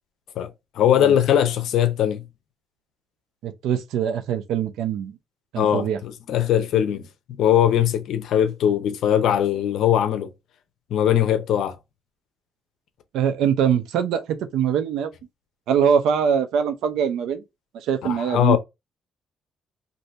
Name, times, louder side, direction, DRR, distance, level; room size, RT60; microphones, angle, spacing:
voice 1, 0.8-2.2 5.6-10.3 10.9-11.8 18.0-18.6, left 10 dB, 80° left, 0.6 m, -20 dB
voice 2, 3.4-5.2 5.5-6.0 13.1-15.1 15.7-17.4 17.7-18.6, right 8 dB, 85° right, 0.5 m, -23 dB
2.7 x 2.6 x 3.1 m
cardioid pair, 90°, 0 cm